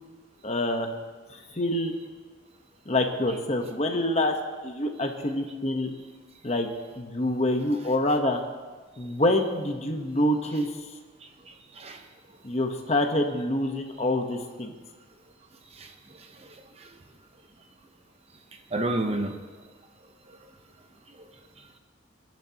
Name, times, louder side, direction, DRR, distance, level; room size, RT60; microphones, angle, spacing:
voice 1, 0.4-0.9 1.3-1.9 2.9-4.3 4.6-5.9 6.4-6.7 7.0-8.4 9.0-10.7 12.4-14.7, left 1 dB, 35° left, 4 dB, 1.1 m, -26 dB
voice 2, 11.2-12.0 15.7-16.9 18.7-19.4 20.3-20.4 21.2-21.3, right 1 dB, 30° right, 5 dB, 0.8 m, -33 dB
26.5 x 10.5 x 2.9 m, 1.4 s
head